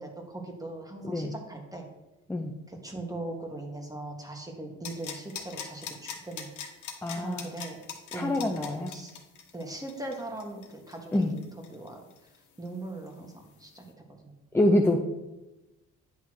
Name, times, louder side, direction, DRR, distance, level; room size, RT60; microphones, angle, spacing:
voice 1, 0.0-1.9 2.7-6.5 7.1-7.8 8.1-9.1 9.5-12.0 12.6-13.8 14.2-14.3, right 2 dB, 10° right, 2 dB, 1.6 m, -40 dB
sound 1, 4.8-12.4 12.6-12.7, left 7 dB, 80° left, 1.3 m, -41 dB
voice 2, 7.0-7.5 8.1-8.9 11.1-11.3 14.5-15.0, left 1 dB, 10° left, 3 dB, 0.6 m, -25 dB
9.7 x 3.5 x 6.3 m, 1.0 s
cardioid pair, 90°, 30 cm